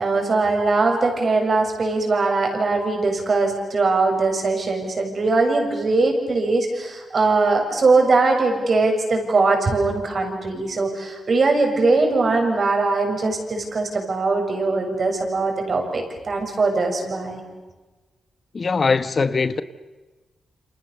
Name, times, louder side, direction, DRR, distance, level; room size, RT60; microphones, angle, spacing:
voice 1, 0.0-17.4, right 3 dB, 50° right, 7.2 m, -21 dB
voice 2, 18.5-19.6, left 4 dB, 40° left, 1.1 m, -21 dB
29.0 x 27.0 x 6.9 m
cardioid pair, 85°, 0 cm